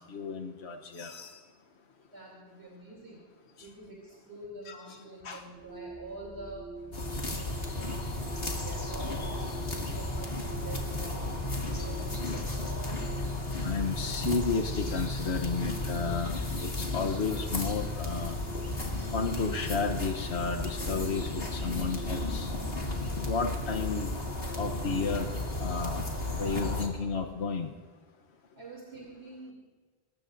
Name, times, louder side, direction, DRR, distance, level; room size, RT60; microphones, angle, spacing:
voice 1, 0.0-1.4 4.7-5.0 5.2-5.4 13.6-18.4 19.1-22.5 23.2-24.1 24.6-25.3 25.6-27.7, left 4 dB, 90° left, 3 dB, 1.2 m, -32 dB
voice 2, 2.1-3.2 3.6-6.7 7.0-7.5 7.8-12.5 28.5-29.5, right 2 dB, 85° right, -4 dB, 3.4 m, -47 dB
sound 1, 5.5-25.3, right 2 dB, 10° right, 3.6 m, -46 dB
sound 2, 6.9-26.9, left 2 dB, 65° left, 2.5 m, -34 dB
25.0 x 20.0 x 2.6 m, 1.5 s
omnidirectional pair, 1.1 m